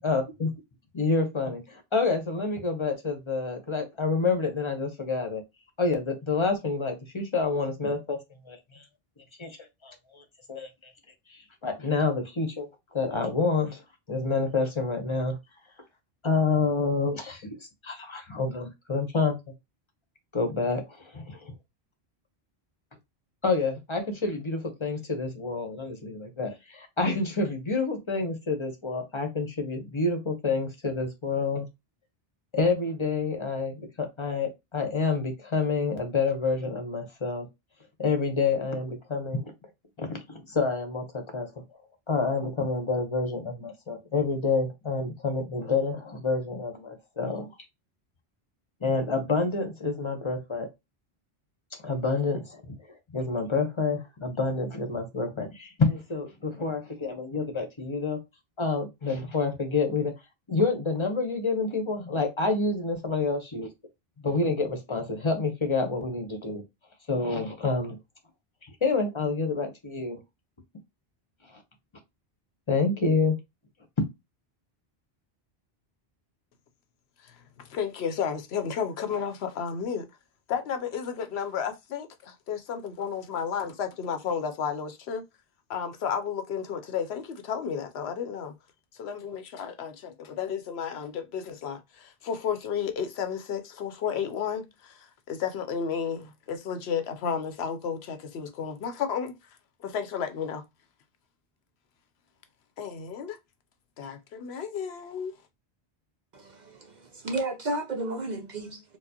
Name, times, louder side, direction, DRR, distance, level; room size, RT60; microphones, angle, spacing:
voice 1, 0.0-0.5 0.9-5.4 5.8-8.2 8.5-8.8 9.4-9.6 9.8-10.0 10.5-10.9 11.6-13.8 14.1-15.4 16.2-17.5 17.8-19.4 20.3-20.8 21.1-21.5 23.4-31.7 32.5-37.5 38.0-39.5 40.0-41.5 42.1-47.5 48.8-50.7 51.8-52.6 53.1-58.2 58.6-60.1 60.5-63.7 64.2-66.6 67.1-68.0 68.8-70.2 72.7-73.4, left 4 dB, 30° left, 0.7 m, -28 dB
voice 2, 77.2-80.1 80.5-85.2 85.7-88.5 88.9-99.3 99.8-100.6 102.8-103.4 104.0-105.3, left 7 dB, 80° left, 0.9 m, -32 dB
voice 3, 106.3-108.8, right 2 dB, 50° right, 0.6 m, -33 dB
4.4 x 2.0 x 2.7 m
omnidirectional pair, 1.1 m